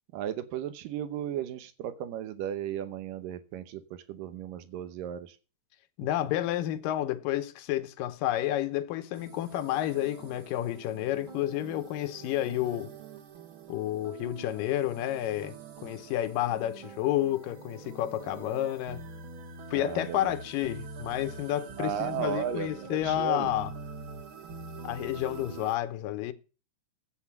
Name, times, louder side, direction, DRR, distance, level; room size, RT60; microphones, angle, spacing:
voice 1, 0.1-5.3 19.7-20.3 21.8-23.5, right 10 dB, 90° right, 2.6 m, -35 dB
voice 2, 6.0-12.9 13.7-15.6 15.8-19.0 19.7-23.7 24.8-26.3, left 13 dB, 90° left, 2.5 m, -30 dB
sound 1, 9.1-25.8, right 5 dB, 50° right, 1.7 m, -45 dB
10.0 x 8.3 x 7.2 m
omnidirectional pair, 3.8 m